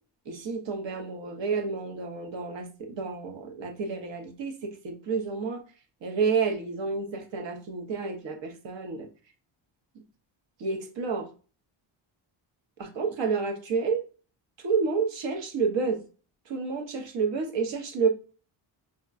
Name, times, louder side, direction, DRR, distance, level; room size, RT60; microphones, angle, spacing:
voice 1, 0.3-5.6 6.0-9.1 10.6-11.2 12.8-14.0 14.6-16.0 16.5-18.1, right 5 dB, 65° right, 5 dB, 0.9 m, -29 dB
5.7 x 2.2 x 2.4 m, 0.37 s
wide cardioid pair, 160°, 49 cm